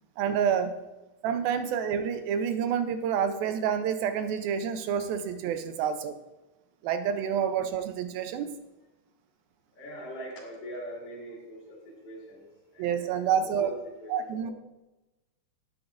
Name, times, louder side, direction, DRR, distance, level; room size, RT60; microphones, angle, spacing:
voice 1, 0.2-0.8 1.2-6.2 6.8-8.5 12.8-13.7 14.1-14.5, right 8 dB, 80° right, 9 dB, 2.3 m, -28 dB
voice 2, 9.8-14.5, equal, 50° left, -5 dB, 3.7 m, -43 dB
20.5 x 7.9 x 2.5 m, 1.0 s
omnidirectional pair, 4.5 m